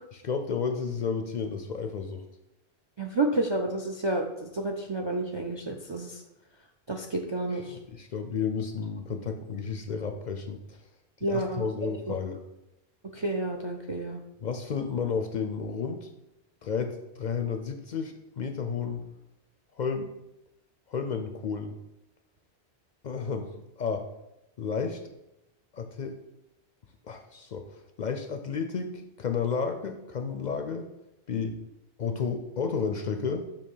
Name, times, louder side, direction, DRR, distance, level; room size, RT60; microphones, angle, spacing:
voice 1, 0.1-2.2 7.5-10.8 11.3-12.4 14.4-16.1 16.6-19.0 19.8-20.1 20.9-21.7 23.0-23.5 23.8-24.0 24.6-25.0 25.7-26.1 27.0-27.6 28.0-28.9 29.2-30.9 31.3-31.6 32.0-33.5, left 5 dB, 55° left, 6 dB, 0.5 m, -32 dB
voice 2, 3.0-6.2 6.9-7.8 11.2-11.6 12.1-12.2 13.1-14.2, right 2 dB, 45° right, 3 dB, 0.3 m, -30 dB
6.7 x 2.8 x 5.5 m, 0.90 s
omnidirectional pair, 1.1 m